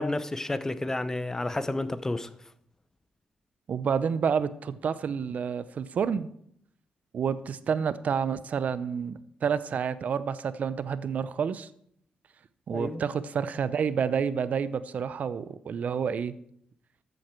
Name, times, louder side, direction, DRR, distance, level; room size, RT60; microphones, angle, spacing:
voice 1, 0.0-2.3 12.7-13.0, left 2 dB, 20° left, 0.7 m, -30 dB
voice 2, 3.7-6.3 7.1-11.7 12.7-16.3, right 7 dB, 65° right, 0.6 m, -29 dB
13.5 x 7.9 x 4.5 m
cardioid pair, 90°, 3 cm